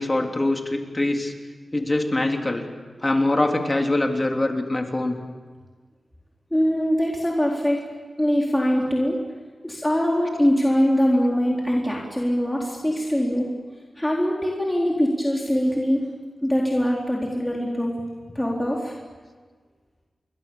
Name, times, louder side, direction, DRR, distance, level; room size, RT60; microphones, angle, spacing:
voice 1, 0.0-1.3 1.7-2.6 3.0-5.2, left 2 dB, 30° left, 3 dB, 3.5 m, -23 dB
voice 2, 6.5-7.8 8.2-9.2 9.6-13.5 14.0-16.0 16.4-17.9 18.3-18.9, equal, 10° left, -2 dB, 4.2 m, -22 dB
29.0 x 22.0 x 7.3 m, 1.5 s
cardioid pair, 50°, 0 cm